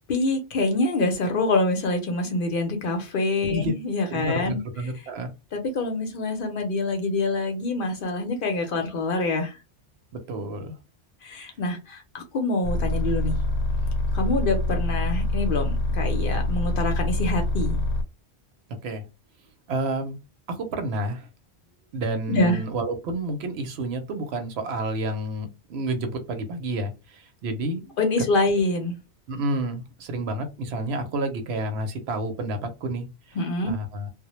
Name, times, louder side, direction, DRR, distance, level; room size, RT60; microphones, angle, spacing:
voice 1, 0.1-4.6 5.5-9.6 11.2-13.4 14.1-17.8 22.3-22.6 28.0-29.0 33.4-33.7, left 2 dB, 60° left, 0.7 m, -25 dB
voice 2, 4.1-5.3 10.1-10.8 18.8-19.0 19.7-20.2 20.5-21.3 21.9-28.0 29.3-33.4 33.6-34.1, right 2 dB, 70° right, 0.8 m, -30 dB
sound 1, 12.6-18.0, left 2 dB, 90° left, 0.9 m, -25 dB
2.1 x 2.0 x 2.9 m
omnidirectional pair, 1.1 m